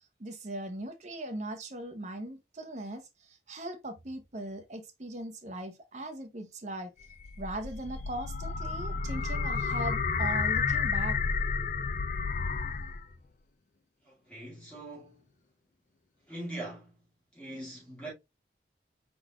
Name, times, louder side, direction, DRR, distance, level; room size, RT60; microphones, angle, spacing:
voice 1, 0.2-6.9 7.4-11.2, right 1 dB, 40° right, 0.8 m, -39 dB
sound 1, 7.0-13.1, left 5 dB, 45° left, 0.4 m, -31 dB
voice 2, 14.1-15.2 16.3-17.0 17.3-18.1, right 1 dB, 5° left, 2.3 m, -42 dB
4.9 x 3.8 x 2.3 m
head